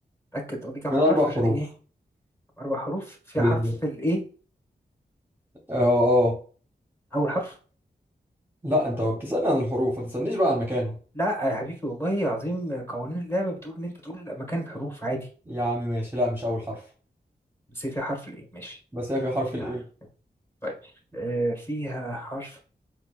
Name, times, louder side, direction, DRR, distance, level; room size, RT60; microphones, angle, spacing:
voice 1, 0.3-1.7 2.6-4.2 7.1-7.6 11.1-15.2 17.7-18.8 19.5-19.7 20.6-22.6, right 1 dB, 15° left, 2 dB, 1.3 m, -30 dB
voice 2, 0.9-1.6 3.4-3.7 5.7-6.4 8.6-11.0 15.5-16.8 18.9-19.8, left 1 dB, 10° right, -2 dB, 0.9 m, -24 dB
4.3 x 2.3 x 2.3 m, 0.39 s
cardioid pair, 50°, 18 cm